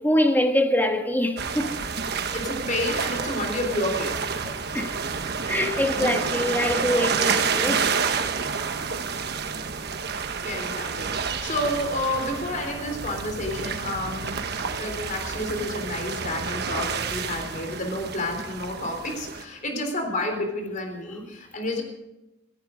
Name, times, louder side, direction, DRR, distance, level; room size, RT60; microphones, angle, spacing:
voice 1, 0.0-1.7 4.4-5.0 5.5-7.9 11.3-11.4, left 1 dB, 10° left, 1.5 m, -24 dB
sound 1, 1.4-19.4, right 5 dB, 60° right, 1.3 m, -29 dB
voice 2, 2.3-4.5 10.2-14.4 14.7-21.8, left 1 dB, 45° left, 3.7 m, -30 dB
17.0 x 16.0 x 5.1 m
head